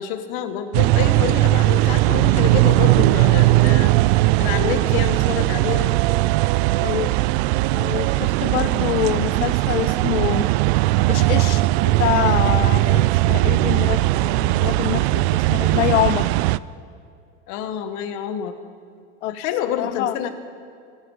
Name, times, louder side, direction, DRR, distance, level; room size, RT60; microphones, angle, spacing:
voice 1, 0.0-3.9 4.4-6.0 17.5-18.6 19.3-20.3, left 9 dB, 55° left, 8 dB, 1.7 m, -27 dB
sound 1, 0.7-16.6, right 19 dB, 60° right, 0.5 m, -18 dB
voice 2, 6.8-7.1 7.7-10.5 11.1-16.3 19.2-19.4 19.8-20.1, left 12 dB, 90° left, 15 dB, 0.8 m, -25 dB
24.0 x 9.6 x 5.0 m, 2.3 s
supercardioid pair, 115°, 35 cm